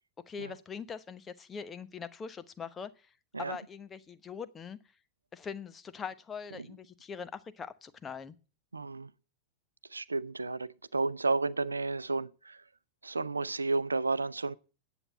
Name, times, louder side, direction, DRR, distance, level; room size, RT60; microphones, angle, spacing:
voice 1, 0.3-2.9 3.4-4.8 5.3-8.3, left 6 dB, 20° left, 1.0 m, -42 dB
voice 2, 8.7-9.1 9.9-12.6 13.0-14.5, right 3 dB, 80° right, 0.5 m, -32 dB
10.0 x 8.2 x 8.7 m
figure-of-eight pair, 90°, 0 cm